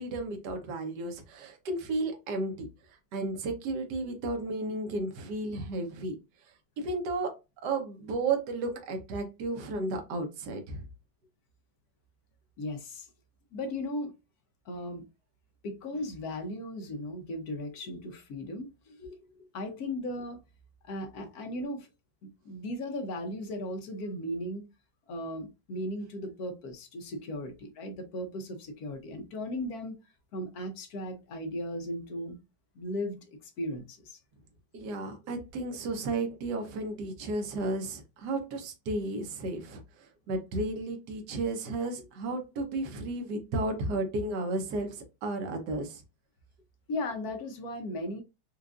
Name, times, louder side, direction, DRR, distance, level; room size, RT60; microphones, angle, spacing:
voice 1, 0.0-2.7 3.1-6.1 6.8-7.3 7.6-10.9 19.0-19.2 34.7-46.0, right 2 dB, 70° right, 1.4 m, -33 dB
voice 2, 12.6-13.1 13.5-14.1 14.6-15.1 15.6-19.0 19.5-20.4 20.8-21.9 22.2-24.6 25.1-30.0 30.3-32.4 32.7-33.2 33.4-34.2 46.9-48.2, left 1 dB, 65° left, 1.1 m, -36 dB
4.6 x 2.4 x 2.4 m
omnidirectional pair, 2.0 m